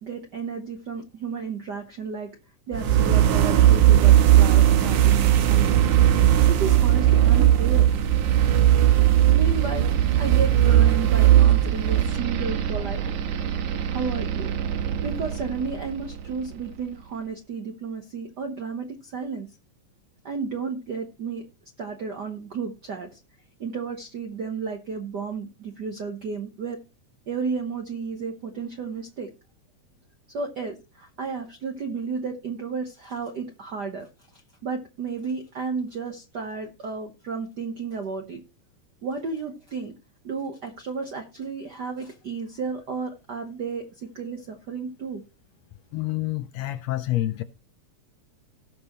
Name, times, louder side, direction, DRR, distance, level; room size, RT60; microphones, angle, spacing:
voice 1, 0.0-2.3 2.7-5.9 6.5-7.9 9.3-9.9 10.2-13.0 13.9-14.5 15.0-19.5 20.2-21.4 21.8-23.2 23.6-26.8 27.3-29.3 30.3-34.1 34.3-38.4 39.0-39.9 40.2-45.2, right 5 dB, 65° right, 1.0 m, -32 dB
sound 1, 2.7-16.6, right 11 dB, 85° right, 2.5 m, -19 dB
voice 2, 45.9-47.4, left 16 dB, 75° left, 1.6 m, -27 dB
18.0 x 6.1 x 3.1 m
omnidirectional pair, 3.4 m